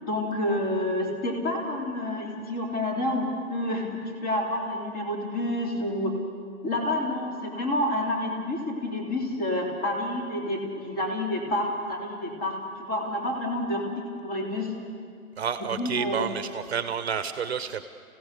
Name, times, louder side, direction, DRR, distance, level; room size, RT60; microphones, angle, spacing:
voice 1, 0.0-6.1 6.6-14.7 15.6-16.3, left 1 dB, 25° left, 0 dB, 3.4 m, -29 dB
voice 2, 15.4-17.8, right 7 dB, 45° right, 10 dB, 1.1 m, -30 dB
29.0 x 16.5 x 6.8 m, 2.3 s
hypercardioid pair, 160°, 43 cm